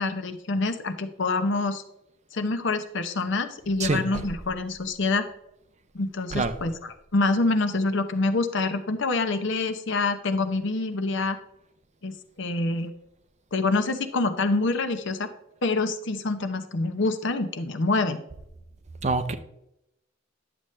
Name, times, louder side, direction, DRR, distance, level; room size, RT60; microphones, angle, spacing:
voice 1, 0.0-1.8 2.3-5.3 5.9-11.4 12.0-12.9 13.5-15.3 15.6-18.2, left 3 dB, 65° left, 9 dB, 0.8 m, -26 dB
voice 2, 19.0-19.3, right 3 dB, 35° right, 10 dB, 0.6 m, -25 dB
10.5 x 7.0 x 3.2 m, 0.83 s
head